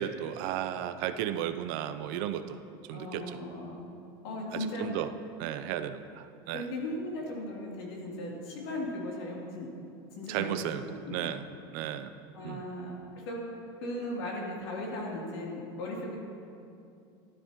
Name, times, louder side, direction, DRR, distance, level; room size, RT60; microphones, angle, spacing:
voice 1, 0.0-2.6 2.9-3.4 4.5-5.1 5.4-6.6 10.3-11.5 11.7-12.1 12.4-12.6, right 10 dB, 60° right, 10 dB, 0.6 m, -34 dB
voice 2, 2.9-3.8 4.2-4.9 6.5-9.7 10.1-11.4 12.3-13.4 13.8-16.2, left 1 dB, 90° left, -3 dB, 3.2 m, -37 dB
15.0 x 12.0 x 3.0 m, 2.6 s
supercardioid pair, 150°, 13 cm